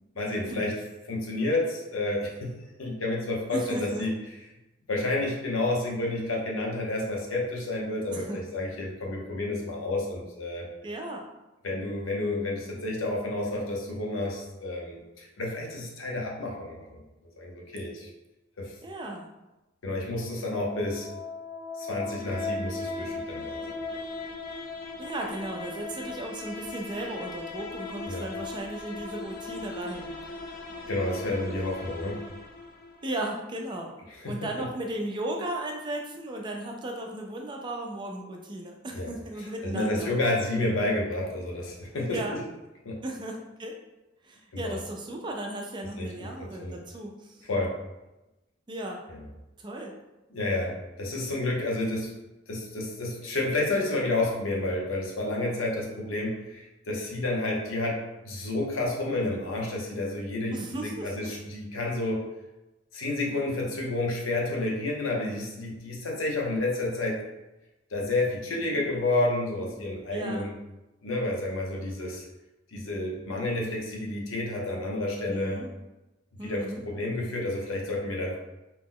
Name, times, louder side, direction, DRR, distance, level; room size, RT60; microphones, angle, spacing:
voice 1, 0.2-0.8 1.1-2.5 2.8-4.1 4.9-10.7 11.6-17.0 17.4-18.1 18.6-18.7 19.8-21.1 21.8-23.8 28.0-28.3 30.9-32.2 34.1-34.7 38.9-39.1 39.4-42.4 42.8-43.0 44.5-44.8 46.0-46.8 47.5-47.7 49.1-49.2 50.3-52.1 52.5-58.0 58.2-62.2 62.9-67.2 67.9-70.5 71.0-72.2 72.7-75.6 76.4-78.4, left 2 dB, 80° left, -1 dB, 0.7 m, -30 dB
voice 2, 3.5-4.0 8.1-8.4 10.8-11.2 18.8-19.2 25.0-30.1 33.0-33.9 34.2-40.1 42.1-42.4 43.0-43.7 44.2-47.4 48.7-49.0 49.6-49.9 60.5-61.1 70.1-70.5 75.3-75.7 76.4-76.8, right 1 dB, 25° right, 1 dB, 0.4 m, -35 dB
sound 1, 20.3-33.2, left 3 dB, 45° left, 0.3 m, -38 dB
2.8 x 2.1 x 3.6 m, 1.0 s
head